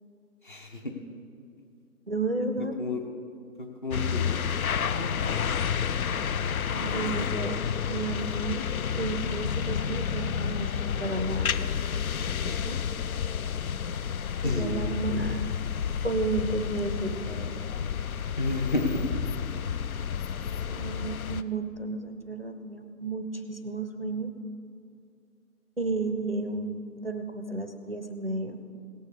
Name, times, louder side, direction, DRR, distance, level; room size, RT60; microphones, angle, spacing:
voice 1, 0.4-0.9 2.6-3.0 3.6-4.4 4.7-5.3 14.4-14.8 18.4-19.1, left 2 dB, 30° left, 3 dB, 0.9 m, -31 dB
voice 2, 2.1-2.8 6.7-7.6 7.9-8.6 9.0-11.6 12.4-12.8 14.4-15.5 16.0-17.5 17.9-18.0 20.7-24.3 25.8-28.6, right 3 dB, 40° right, 6 dB, 0.5 m, -32 dB
sound 1, 3.9-21.4, left 7 dB, 65° left, 0.5 m, -30 dB
17.0 x 6.6 x 4.9 m, 2.4 s
figure-of-eight pair, 165°, 47 cm